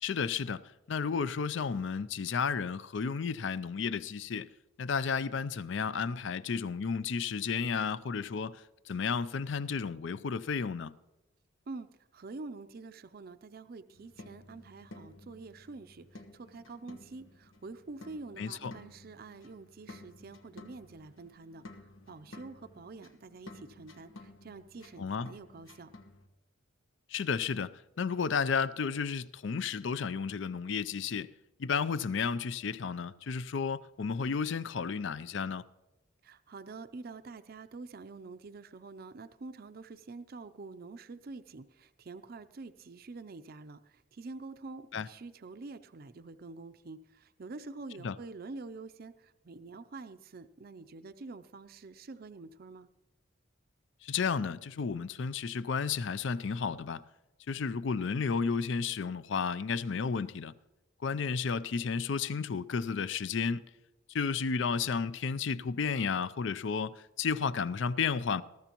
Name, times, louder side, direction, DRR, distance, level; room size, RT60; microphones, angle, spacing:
voice 1, 0.0-4.5 4.8-10.9 18.4-18.7 25.0-25.3 27.1-31.3 31.6-35.6 44.9-45.1 48.0-48.1 54.0-57.0 57.5-60.5 61.0-63.7 64.1-68.4, left 5 dB, 65° left, 0.4 m, -32 dB
voice 2, 11.7-25.9 36.2-52.9, right 3 dB, 50° right, 0.5 m, -47 dB
sound 1, 13.9-26.3, left 2 dB, 90° left, 1.2 m, -53 dB
21.0 x 13.5 x 3.0 m
head